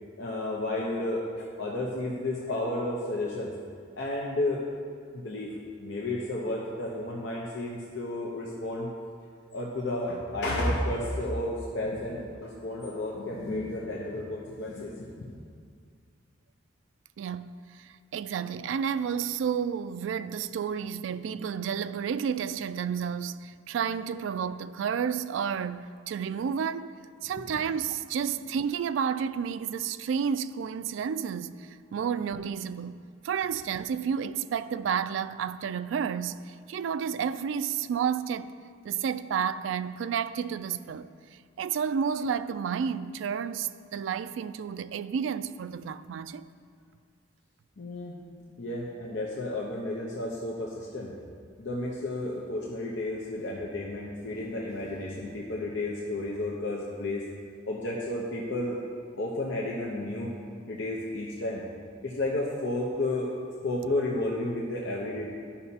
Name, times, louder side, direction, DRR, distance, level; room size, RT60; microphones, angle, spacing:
voice 1, 0.2-3.5 4.0-4.6 5.1-5.5 5.8-8.9 9.5-15.4 47.8-48.2 48.6-51.1 51.6-57.2 57.7-58.8 59.2-60.3 60.7-61.6 62.0-63.3 63.6-65.3, left 1 dB, 70° left, 0.8 m, -32 dB
voice 2, 17.2-26.9 27.2-38.6 38.8-41.1 41.6-46.4, right 7 dB, 75° right, 0.3 m, -31 dB
12.5 x 5.6 x 2.8 m
head